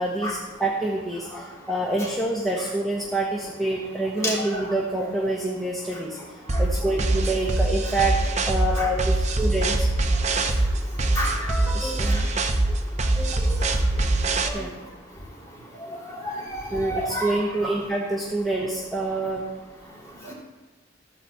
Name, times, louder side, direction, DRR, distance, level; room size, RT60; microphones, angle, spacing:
voice 1, 0.0-6.2 6.6-8.1 8.5-9.9 11.4-12.3 13.0-13.4 14.4-14.7 16.7-19.4, right 2 dB, ahead, -4 dB, 1.1 m, -27 dB
voice 2, 4.2-4.6 6.5-6.6 8.8-8.9 11.1-11.3 12.1-12.2 13.4-13.5 16.1-17.3 17.6-17.7 20.3-20.4, equal, 15° left, -6 dB, 3.2 m, -30 dB
sound 1, 6.5-14.5, right 2 dB, 35° right, 0.8 m, -23 dB
14.0 x 5.1 x 7.3 m, 1.2 s
head